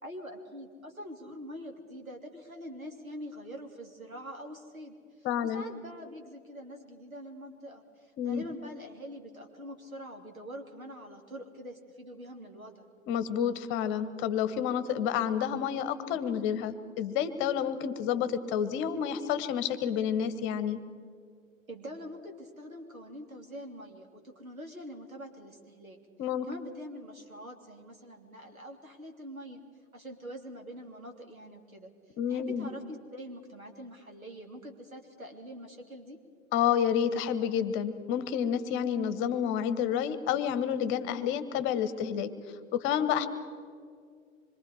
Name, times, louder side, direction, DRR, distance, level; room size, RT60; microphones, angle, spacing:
voice 1, 0.0-12.9 21.7-26.0 26.5-29.6 29.9-31.9 32.3-36.2, equal, 85° right, 2 dB, 3.1 m, -44 dB
voice 2, 5.2-5.6 8.2-8.5 13.1-20.8 26.2-26.5 32.2-32.7 36.5-42.3 42.7-43.3, left 8 dB, 30° left, 12 dB, 1.2 m, -29 dB
26.0 x 23.0 x 4.8 m, 2.2 s
figure-of-eight pair, 100°, 41 cm